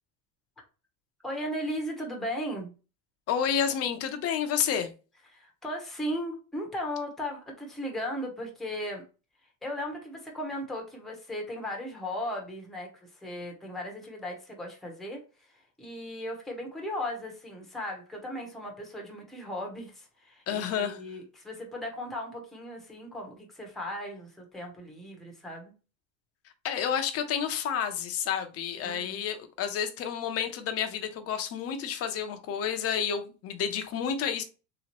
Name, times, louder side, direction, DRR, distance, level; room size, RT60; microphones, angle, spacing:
voice 1, 1.2-2.7 5.3-9.0 9.6-15.2 15.8-25.7 28.8-29.2, equal, ahead, 0.7 m, -36 dB
voice 2, 3.3-4.9 20.5-21.0 26.6-34.4, left 8 dB, 35° left, 0.5 m, -30 dB
3.4 x 2.9 x 2.9 m
cardioid pair, 150°, 44 cm